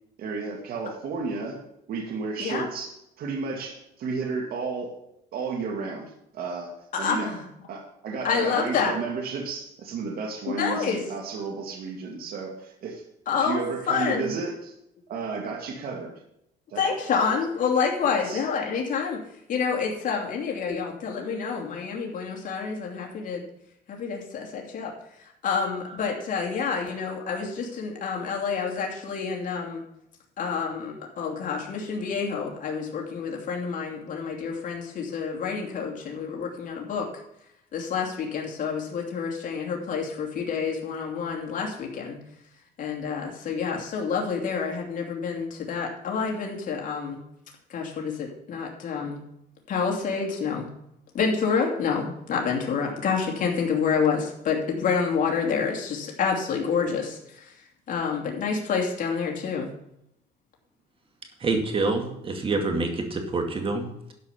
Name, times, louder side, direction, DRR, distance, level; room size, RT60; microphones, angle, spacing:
voice 1, 0.2-1.6 1.9-5.0 5.3-7.3 7.7-13.0 13.3-14.7 15.1-16.1 16.7-16.8 18.0-18.4, right 4 dB, 65° right, 2 dB, 2.1 m, -33 dB
voice 2, 6.9-7.4 8.2-8.9 10.5-11.0 13.3-14.3 16.8-19.2 19.5-23.4 23.9-24.9 25.4-29.8 30.4-37.1 37.7-42.2 42.8-47.2 47.7-49.2 49.7-50.7 51.1-57.5 57.9-59.7, left 5 dB, 50° left, 0 dB, 2.7 m, -28 dB
voice 3, 61.4-63.8, right 3 dB, 30° right, 4 dB, 2.3 m, -26 dB
12.0 x 5.4 x 7.0 m, 0.79 s
cardioid pair, 110°, 17 cm